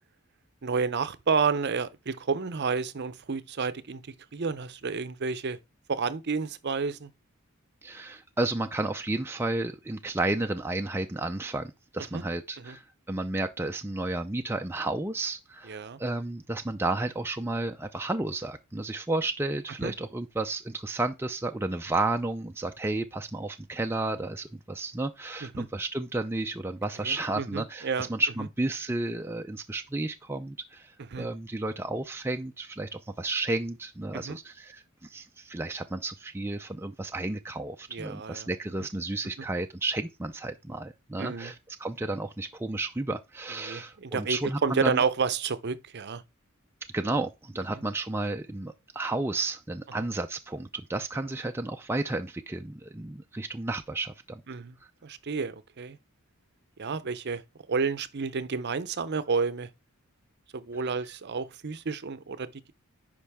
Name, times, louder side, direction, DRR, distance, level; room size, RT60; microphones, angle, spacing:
voice 1, 0.6-5.6 5.9-7.1 12.1-12.2 12.6-12.8 15.7-16.0 19.8-19.9 25.4-25.7 27.0-28.1 31.1-31.3 34.1-34.4 37.9-38.5 41.2-41.5 43.6-46.2 54.5-54.8 55.0-56.0 56.8-57.4 57.7-59.7 60.5-62.7, right 5 dB, 50° right, 0.6 m, -30 dB
voice 2, 7.8-45.0 46.9-54.4, right 2 dB, 10° right, 0.4 m, -32 dB
10.0 x 5.1 x 3.5 m
head